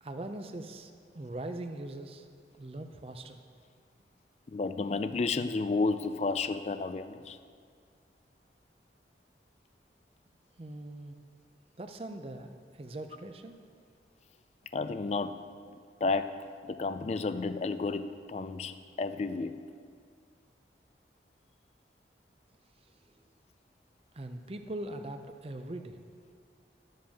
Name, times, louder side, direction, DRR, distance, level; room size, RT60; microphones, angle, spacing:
voice 1, 0.0-2.3 2.6-3.4 10.6-11.2 11.8-13.6 22.8-23.1 24.1-26.0, right 1 dB, 35° right, 7 dB, 0.5 m, -41 dB
voice 2, 4.5-7.4 14.7-15.4 16.0-16.3 16.6-19.5, left 3 dB, 35° left, 11 dB, 0.3 m, -31 dB
12.0 x 7.5 x 3.5 m, 2.1 s
head